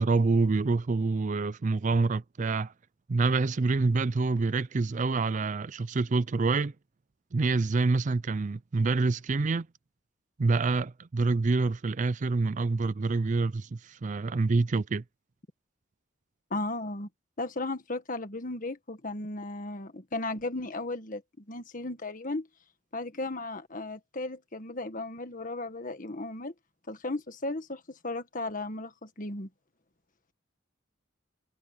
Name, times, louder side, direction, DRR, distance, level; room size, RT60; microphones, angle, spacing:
voice 1, 0.0-2.7 3.1-6.7 7.3-9.7 10.4-15.0, right 3 dB, 40° right, 0.4 m, -26 dB
voice 2, 16.5-17.1 17.4-22.5 22.9-26.5 26.9-29.5, left 2 dB, 45° left, 1.7 m, -35 dB
head